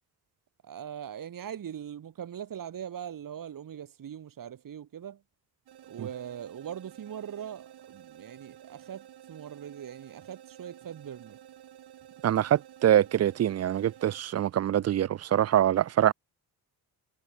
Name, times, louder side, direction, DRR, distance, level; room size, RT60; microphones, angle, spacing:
voice 1, 0.6-5.2 5.9-11.4, right 9 dB, 60° right, 3.5 m, -41 dB
sound 1, 5.7-14.2, right 11 dB, 90° right, 4.2 m, -52 dB
voice 2, 12.2-16.1, right 11 dB, 45° right, 0.5 m, -24 dB
wide cardioid pair, 155°, 38 cm